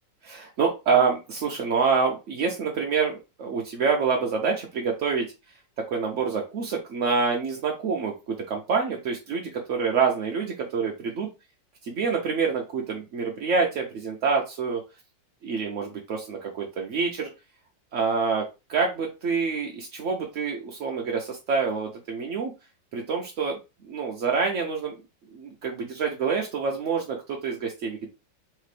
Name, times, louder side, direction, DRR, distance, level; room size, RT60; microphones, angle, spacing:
voice 1, 0.2-5.3 5.9-11.3 11.8-14.8 15.4-17.3 17.9-22.5 22.9-23.6 23.8-24.9 25.3-28.1, right 5 dB, 65° right, 0 dB, 0.7 m, -27 dB
3.8 x 3.3 x 3.2 m, 0.27 s
omnidirectional pair, 2.0 m